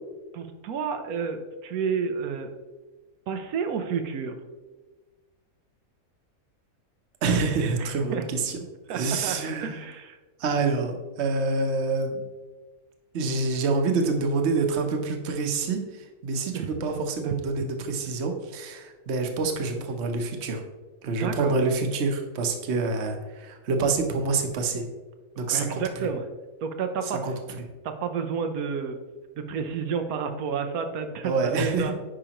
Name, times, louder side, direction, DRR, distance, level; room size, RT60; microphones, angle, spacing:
voice 1, 0.3-2.5 3.3-4.3 7.8-8.3 8.9-10.2 16.5-16.7 17.2-17.7 21.2-21.6 25.4-26.2 26.6-27.3 27.8-29.0 29.4-31.9, right 6 dB, 85° right, 7 dB, 1.1 m, -31 dB
voice 2, 7.2-8.6 8.9-9.8 10.4-12.3 13.1-20.6 21.0-24.9 25.4-26.1 27.2-27.3 31.2-31.9, right 3 dB, 55° right, 4 dB, 1.0 m, -27 dB
9.9 x 4.9 x 2.9 m, 1.3 s
omnidirectional pair, 1.5 m